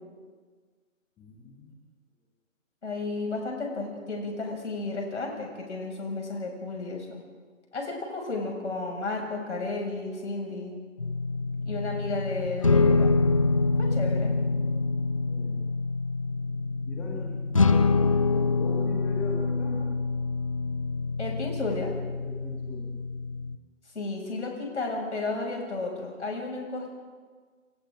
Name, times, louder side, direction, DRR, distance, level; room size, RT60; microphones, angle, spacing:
voice 1, 1.2-1.8 15.2-15.7 16.9-19.9 22.2-23.0, left 4 dB, 5° left, 0 dB, 1.0 m, -40 dB
voice 2, 2.8-7.2 7.7-10.8 11.7-13.2 13.8-14.4 21.2-22.0 23.9-26.9, left 3 dB, 60° left, 0 dB, 7.0 m, -33 dB
sound 1, 11.0-23.6, left 3 dB, 25° left, 0.5 m, -26 dB
28.0 x 26.5 x 3.9 m, 1.5 s
figure-of-eight pair, 145°, 40 cm